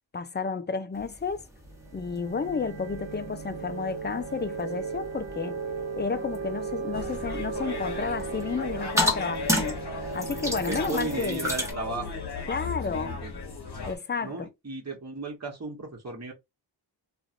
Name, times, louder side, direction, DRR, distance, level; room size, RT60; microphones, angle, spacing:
voice 1, 0.1-1.5 1.9-5.6 6.0-9.8 10.1-11.5 12.5-13.2 13.9-14.5, left 5 dB, 25° left, 0.4 m, -31 dB
sound 1, 0.9-11.7, left 1 dB, 5° right, 1.1 m, -34 dB
sound 2, 1.6-11.2, right 4 dB, 65° right, 0.8 m, -36 dB
sound 3, 6.9-14.0, left 4 dB, 55° left, 1.0 m, -37 dB
voice 2, 10.4-12.2 12.6-13.3 14.2-16.3, right 3 dB, 35° right, 1.1 m, -36 dB
3.1 x 2.5 x 2.5 m
wide cardioid pair, 65°, 47 cm